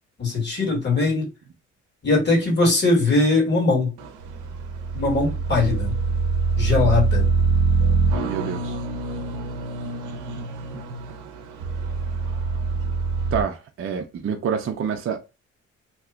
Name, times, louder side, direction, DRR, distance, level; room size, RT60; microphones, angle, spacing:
voice 1, 0.2-1.3 2.0-3.9 4.9-5.9 6.6-7.3, left 3 dB, 35° left, 1.8 m, -20 dB
sound 1, 4.0-13.4, right 4 dB, 90° right, 0.6 m, -24 dB
voice 2, 8.2-8.8 13.3-15.2, right 7 dB, 45° right, 0.6 m, -27 dB
2.9 x 2.3 x 3.5 m
cardioid pair, 90°, 30 cm